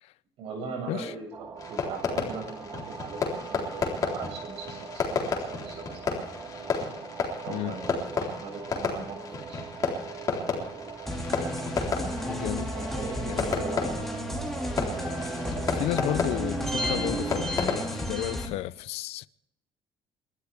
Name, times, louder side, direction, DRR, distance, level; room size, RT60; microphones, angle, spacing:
voice 1, 0.4-6.2 7.4-7.9 8.4-9.6 12.7-13.9, right 4 dB, 65° right, 7.8 m, -40 dB
sound 1, 1.3-17.5, right 6 dB, 30° right, 1.0 m, -40 dB
Fireworks, 1.6-18.1, left 5 dB, 35° left, 3.9 m, -33 dB
sound 2, 11.1-18.5, left 1 dB, 5° left, 2.4 m, -32 dB
voice 2, 12.3-12.7 13.2-13.6 15.7-19.3, left 15 dB, 75° left, 0.6 m, -33 dB
30.0 x 13.0 x 3.5 m
cardioid pair, 175°, 10 cm